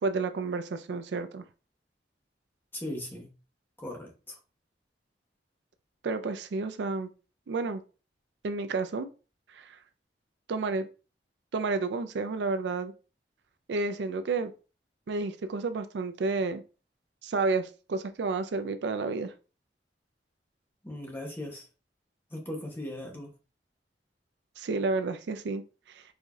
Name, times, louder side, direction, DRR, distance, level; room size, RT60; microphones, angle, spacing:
voice 1, 0.0-1.4 6.0-7.1 7.5-7.8 8.4-9.1 9.5-9.8 10.5-10.9 11.5-12.9 13.7-14.5 15.1-16.6 17.2-19.3 24.6-26.0, right 3 dB, 70° right, 0.4 m, -31 dB
voice 2, 2.8-3.3 3.8-4.1 20.8-21.6 22.3-23.3, left 1 dB, 15° left, 0.9 m, -38 dB
4.7 x 2.6 x 2.4 m
head